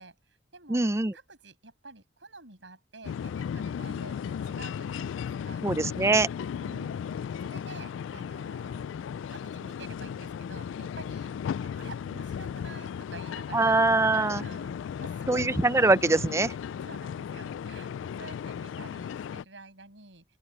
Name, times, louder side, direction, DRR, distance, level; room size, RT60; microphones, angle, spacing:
voice 1, 0.0-4.2 4.4-5.6 6.6-11.3 11.6-15.5 16.8-20.2, right 3 dB, 75° right, 8.0 m, -49 dB
voice 2, 0.7-1.1 5.6-6.3 13.5-14.4 15.3-16.5, right 2 dB, 15° right, 0.5 m, -23 dB
sound 1, 3.0-19.4, left 7 dB, 85° left, 0.3 m, -36 dB
open air
head